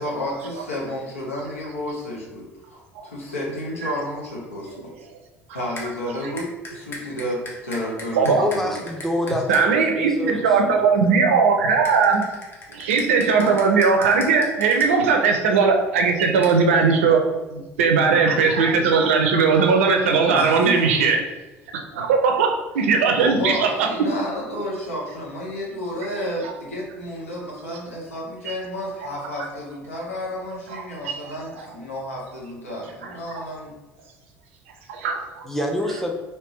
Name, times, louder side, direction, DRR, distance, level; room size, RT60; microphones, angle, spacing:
voice 1, 0.0-4.9 5.5-8.7 17.5-17.6 20.3-20.8 23.2-33.7, left 1 dB, 80° left, -3 dB, 0.8 m, -31 dB
sound 1, 5.8-5.9 6.4-9.6 11.8-14.9 16.4-16.6, left 2 dB, 35° left, 0.8 m, -37 dB
voice 2, 8.3-10.8 35.4-36.1, left 1 dB, 5° left, 1 dB, 0.6 m, -27 dB
voice 3, 9.5-12.2 12.7-17.2 17.8-21.2 21.9-23.9 26.4-26.5 28.5-28.6 30.7-31.2 33.0-33.1 34.9-35.4, right 5 dB, 70° right, 3 dB, 0.5 m, -19 dB
3.3 x 2.8 x 3.0 m, 1.1 s
figure-of-eight pair, 60°, 7 cm